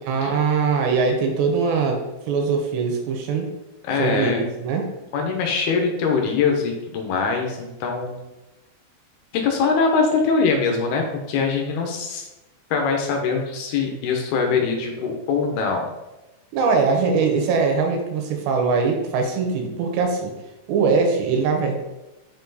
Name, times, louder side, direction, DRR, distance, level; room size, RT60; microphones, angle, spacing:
voice 1, 0.1-3.5 4.0-4.8 16.5-20.3 20.7-21.8, right 4 dB, 85° right, 3 dB, 3.2 m, -22 dB
voice 2, 3.9-4.4 5.1-8.2 9.4-12.3 12.7-15.9, left 5 dB, 75° left, 3 dB, 2.6 m, -22 dB
6.6 x 4.3 x 4.0 m, 1.0 s
omnidirectional pair, 4.9 m